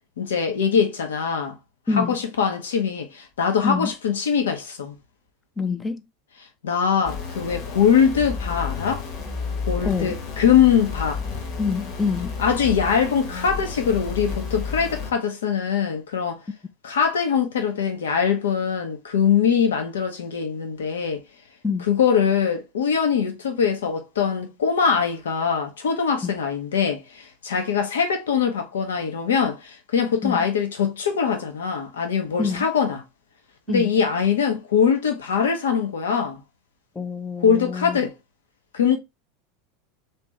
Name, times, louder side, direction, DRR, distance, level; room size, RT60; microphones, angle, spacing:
voice 1, 0.2-1.6 1.9-5.0 6.6-9.0 9.7-11.2 12.4-16.4 16.8-21.2 21.9-33.0 33.7-36.4 37.4-38.1 38.7-39.0, left 7 dB, 75° left, 1.0 m, -22 dB
voice 2, 1.9-2.2 3.6-3.9 5.6-6.0 9.8-10.2 11.6-12.4 21.6-21.9 26.2-26.3 30.2-30.4 32.4-32.7 33.7-33.9 37.0-38.0, left 5 dB, 15° left, 0.6 m, -26 dB
sound 1, 7.0-15.1, left 5 dB, 55° left, 1.3 m, -31 dB
3.4 x 3.0 x 3.2 m
figure-of-eight pair, 85°, 0 cm